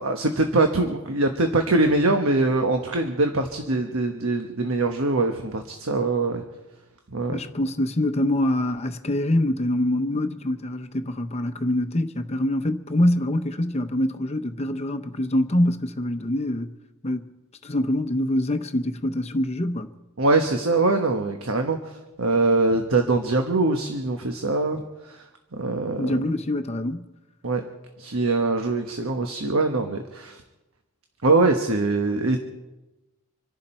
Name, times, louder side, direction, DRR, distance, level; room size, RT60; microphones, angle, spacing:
voice 1, 0.0-6.4 7.1-7.4 20.2-21.8 22.2-24.8 25.1-25.2 25.5-26.2 27.4-27.6 28.0-30.4 31.2-32.4, right 2 dB, 75° right, 1.2 m, -23 dB
voice 2, 7.3-16.7 17.0-17.3 17.6-19.9 26.0-27.0, left 1 dB, 30° left, 0.8 m, -25 dB
26.5 x 11.5 x 4.4 m
head